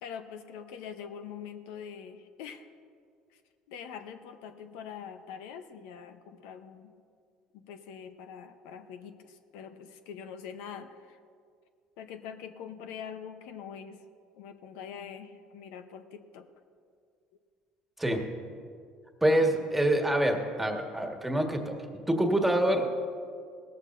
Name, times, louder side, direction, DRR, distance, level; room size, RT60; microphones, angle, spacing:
voice 1, 0.0-2.7 3.3-3.4 3.7-6.9 7.5-11.2 12.0-14.0 14.3-16.5, left 7 dB, 85° left, 8 dB, 0.8 m, -44 dB
voice 2, 19.2-21.8 22.1-22.9, right 1 dB, 5° right, 3 dB, 1.6 m, -26 dB
18.0 x 14.0 x 2.6 m, 2.2 s
supercardioid pair, 100°, 2 cm